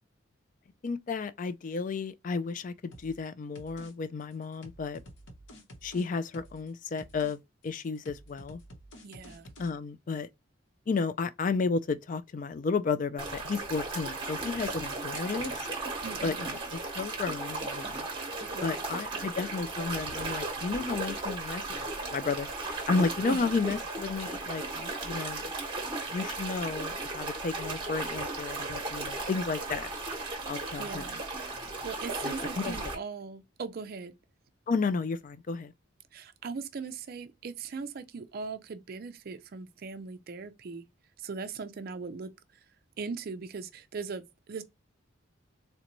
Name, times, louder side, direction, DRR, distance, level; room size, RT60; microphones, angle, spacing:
voice 1, 0.8-5.0 5.8-8.6 9.6-10.3 10.9-15.7 16.2-18.1 18.6-21.6 22.1-25.5 26.1-29.9 30.5-31.1 32.2-32.8 34.7-35.7, left 4 dB, 40° left, 0.3 m, -32 dB
sound 1, 2.9-3.3 3.6-3.9 4.2-6.7 7.0-7.4 7.6-9.7, equal, 60° left, 0.9 m, -50 dB
voice 2, 9.0-9.5 16.0-16.5 18.5-18.9 19.2-19.3 23.3-23.4 30.8-31.2 31.8-34.1 36.1-40.8 41.2-42.6 43.0-44.6, right 4 dB, 45° right, 0.4 m, -39 dB
sound 2, 13.2-33.0, right 2 dB, 25° right, 1.0 m, -36 dB
3.9 x 2.2 x 2.9 m
head